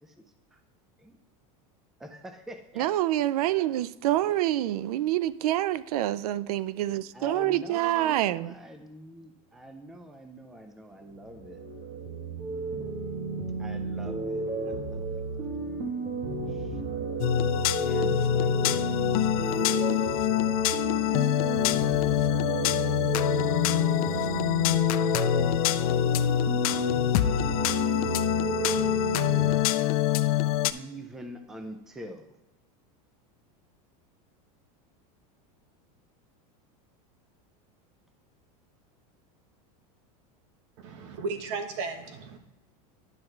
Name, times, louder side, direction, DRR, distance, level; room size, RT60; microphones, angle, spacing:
voice 1, 2.0-2.9 4.1-4.4 7.1-11.6 13.6-15.6 16.5-16.8 17.3-19.8 20.3-20.5 21.1-21.9 30.7-32.4, right 1 dB, ahead, 0.4 m, -46 dB
voice 2, 2.8-8.5, right 14 dB, 85° right, 0.4 m, -27 dB
sound 1, 11.1-29.5, right 3 dB, 30° right, 1.2 m, -32 dB
sound 2, 17.2-30.7, left 13 dB, 75° left, 0.5 m, -25 dB
voice 3, 40.8-42.4, right 4 dB, 55° right, 1.1 m, -35 dB
10.5 x 5.8 x 3.2 m
supercardioid pair, 165°, 19 cm